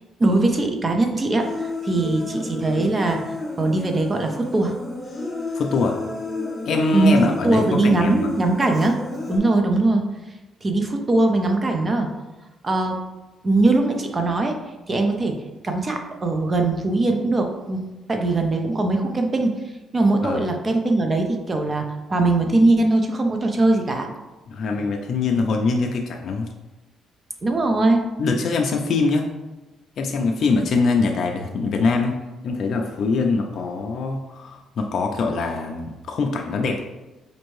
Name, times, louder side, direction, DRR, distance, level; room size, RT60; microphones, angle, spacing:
voice 1, 0.2-4.8 6.9-9.0 9.3-10.1 10.6-12.1 12.6-13.0 13.4-14.6 14.9-19.5 19.9-24.1 27.4-28.0, right 2 dB, 25° right, 4 dB, 0.4 m, -21 dB
Human voice, 1.4-9.4, left 2 dB, 25° left, 0.7 m, -32 dB
voice 2, 5.5-6.0 6.7-8.3 20.2-20.5 24.5-26.5 28.2-29.3 30.0-32.2 32.4-36.8, left 4 dB, 55° left, 2 dB, 0.3 m, -23 dB
4.3 x 2.6 x 3.1 m, 1.1 s
cardioid pair, 135°, 0 cm